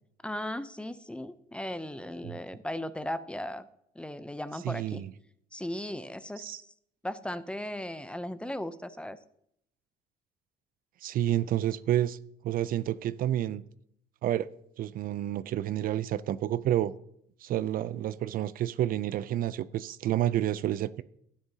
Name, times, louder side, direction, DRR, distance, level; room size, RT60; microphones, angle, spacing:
voice 1, 0.2-3.6 4.0-5.0 5.5-6.7 7.0-9.2, left 1 dB, 5° left, 13 dB, 0.5 m, -37 dB
voice 2, 4.6-5.1 6.4-6.6 11.0-12.2 12.4-13.6 14.2-14.5 14.8-16.9 17.4-21.0, right 12 dB, 55° right, 16 dB, 0.4 m, -29 dB
12.5 x 10.0 x 2.8 m, 0.73 s
cardioid pair, 110°, 17 cm